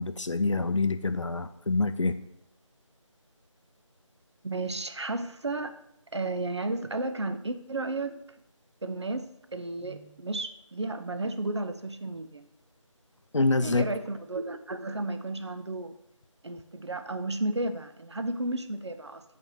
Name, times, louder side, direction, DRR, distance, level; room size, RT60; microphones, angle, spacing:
voice 1, 0.0-2.2 13.3-13.8, left 3 dB, 65° left, 11 dB, 0.6 m, -26 dB
voice 2, 4.4-5.8 6.1-8.2 8.8-12.4 13.6-15.9 16.4-19.2, right 2 dB, 55° right, 9 dB, 0.6 m, -33 dB
5.8 x 4.3 x 6.4 m, 0.79 s
figure-of-eight pair, 165°, 17 cm